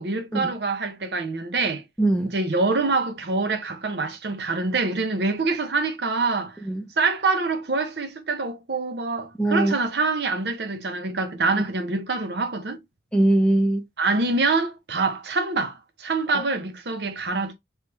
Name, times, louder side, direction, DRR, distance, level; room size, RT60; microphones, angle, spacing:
voice 1, 0.0-1.8 2.3-6.6 7.0-12.8 14.0-17.5, right 3 dB, 75° right, 0.8 m, -25 dB
voice 2, 2.0-2.3 6.6-6.9 9.4-9.7 13.1-13.8 16.3-16.4, right 1 dB, 5° left, 0.7 m, -21 dB
3.4 x 3.1 x 2.9 m
head